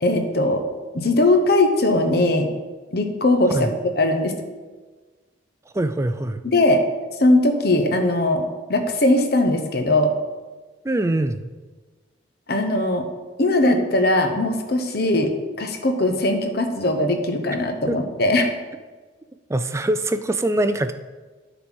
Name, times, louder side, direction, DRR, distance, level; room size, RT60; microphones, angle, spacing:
voice 1, 0.0-0.6 0.9-2.5 2.9-3.6 3.9-4.3 6.4-6.8 7.2-10.2 12.5-13.1 13.4-18.5, left 1 dB, 55° left, 6 dB, 0.9 m, -20 dB
voice 2, 5.7-6.4 10.8-11.5 17.9-18.0 19.5-20.9, right 1 dB, 15° right, 10 dB, 0.3 m, -23 dB
9.4 x 4.0 x 6.2 m, 1.3 s
head